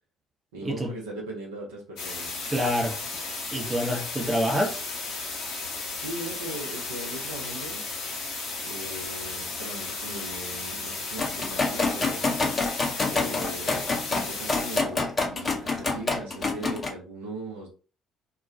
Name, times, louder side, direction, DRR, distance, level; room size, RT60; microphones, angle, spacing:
voice 1, 0.5-2.3 6.0-7.8 8.6-12.2 13.1-17.7, right 2 dB, 70° right, 0.6 m, -39 dB
sound 1, 2.0-14.8, left 3 dB, 65° left, 0.7 m, -34 dB
voice 2, 2.5-3.0 3.5-4.9, equal, 20° right, 0.7 m, -27 dB
sound 2, 11.2-16.9, left 3 dB, 30° left, 0.6 m, -27 dB
2.2 x 2.2 x 2.6 m
figure-of-eight pair, 50°, 0 cm